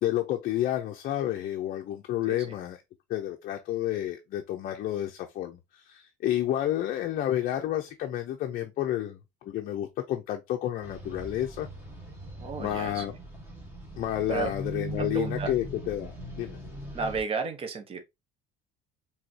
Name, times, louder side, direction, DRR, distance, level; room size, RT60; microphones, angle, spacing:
voice 1, 0.0-2.8 3.1-11.7 12.6-13.1 14.0-16.6, left 12 dB, 45° left, 0.6 m, -30 dB
sound 1, 10.8-17.2, right 1 dB, 10° right, 1.4 m, -40 dB
voice 2, 12.4-13.0 14.3-14.5 15.0-15.5 16.9-18.0, right 5 dB, 25° right, 0.9 m, -33 dB
5.0 x 3.5 x 2.8 m
cardioid pair, 170°, 21 cm